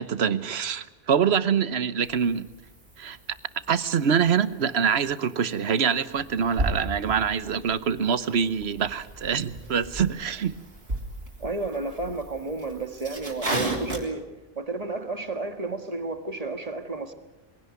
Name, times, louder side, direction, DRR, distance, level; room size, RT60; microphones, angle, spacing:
voice 1, 0.0-2.5 3.0-3.2 3.7-10.6, right 7 dB, 85° right, 15 dB, 1.2 m, -25 dB
sound 1, 2.0-14.0, right 2 dB, 70° right, 3.5 m, -36 dB
voice 2, 11.4-14.3 14.6-17.1, right 3 dB, 35° right, 8 dB, 1.7 m, -32 dB
22.5 x 16.5 x 9.6 m, 1.0 s
omnidirectional pair, 1.0 m